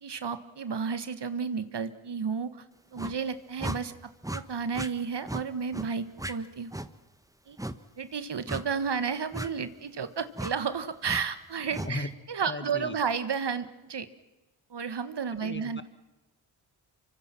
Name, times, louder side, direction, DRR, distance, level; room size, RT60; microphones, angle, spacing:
voice 1, 0.0-2.6 2.9-6.7 7.5-7.6 8.0-14.1 14.7-15.8, right 6 dB, 55° right, 12 dB, 1.6 m, -32 dB
sound 1, 3.0-3.2 3.6-3.8 4.2-4.4 4.7-4.9 5.3-5.4 5.7-5.9 6.2-6.3 6.7-6.9 7.6-7.8 8.5-8.7 9.3-9.5 10.3-10.5 11.0-11.2 11.7-11.9, right 1 dB, 5° right, 1.2 m, -35 dB
voice 2, 12.5-12.9 15.4-15.8, left 2 dB, 20° left, 11 dB, 1.7 m, -36 dB
25.5 x 24.5 x 6.0 m, 1.1 s
cardioid pair, 50°, 50 cm